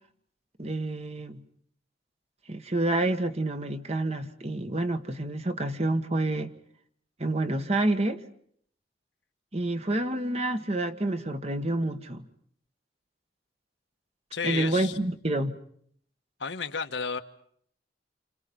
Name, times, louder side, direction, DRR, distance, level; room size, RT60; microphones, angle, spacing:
voice 1, 0.6-1.4 2.5-6.5 7.2-8.2 9.5-12.3 14.4-15.6, right 2 dB, 35° right, 1.5 m, -28 dB
voice 2, 14.3-15.0 16.4-17.2, left 5 dB, 90° left, 1.5 m, -32 dB
29.5 x 28.0 x 5.4 m
head